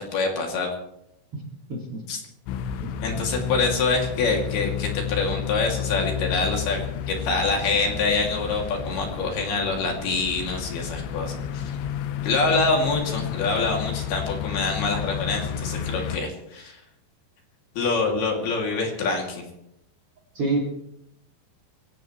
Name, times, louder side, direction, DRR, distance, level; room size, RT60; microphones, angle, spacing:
voice 1, 0.1-0.7 2.1-2.2 3.0-11.8 12.2-16.8 17.8-19.4, left 3 dB, 60° left, 1 dB, 4.4 m, -25 dB
voice 2, 1.7-2.0 20.3-20.6, right 3 dB, 35° right, 0 dB, 3.0 m, -25 dB
sound 1, 2.5-16.2, left 8 dB, 80° left, 3.1 m, -31 dB
23.0 x 17.0 x 3.2 m, 0.80 s
omnidirectional pair, 5.1 m